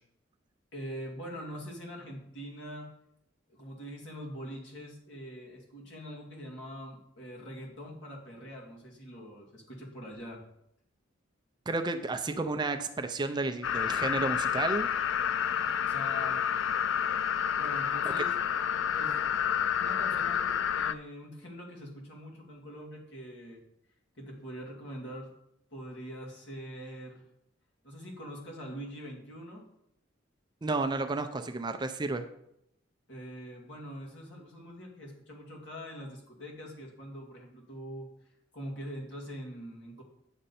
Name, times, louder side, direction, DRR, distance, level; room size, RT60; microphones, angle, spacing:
voice 1, 0.7-2.9 3.5-10.4 15.9-16.5 17.6-18.3 18.9-19.2 19.6-23.6 24.1-25.3 25.7-27.2 27.8-29.6 33.1-38.1 38.5-40.0, equal, 60° left, -2 dB, 2.3 m, -43 dB
voice 2, 11.7-14.9 30.6-32.3, right 3 dB, 20° right, 7 dB, 0.4 m, -32 dB
sound 1, 13.6-20.9, left 8 dB, 80° left, 0.4 m, -29 dB
8.9 x 6.4 x 4.2 m, 0.78 s
head